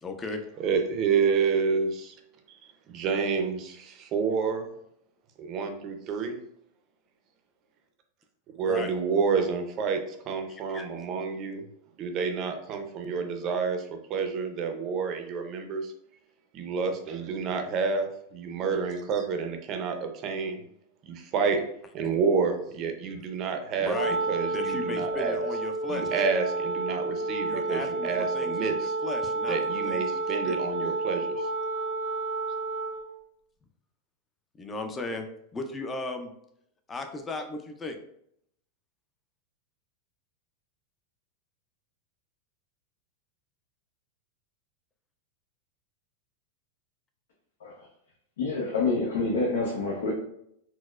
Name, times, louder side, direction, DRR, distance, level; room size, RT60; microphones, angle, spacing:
voice 1, 0.0-0.4 8.6-8.9 10.5-10.9 23.8-24.2 24.5-26.2 27.4-30.2 30.4-30.6 34.6-35.3 35.5-36.3 36.9-38.0, left 3 dB, 15° left, 5 dB, 0.4 m, -36 dB
voice 2, 0.6-2.1 2.9-4.7 5.4-6.4 8.5-11.6 12.0-15.9 16.5-20.6 21.1-21.6 21.9-24.0 24.3-25.5 25.9-28.9 29.5-31.5, right 5 dB, 35° right, 5 dB, 0.5 m, -29 dB
Wind instrument woodwind instrument, 23.9-33.1, right 2 dB, 90° right, 0.4 m, -30 dB
voice 3, 48.4-50.1, left 3 dB, 85° left, -2 dB, 0.7 m, -27 dB
4.2 x 2.1 x 2.3 m, 0.72 s
supercardioid pair, 135°, 0 cm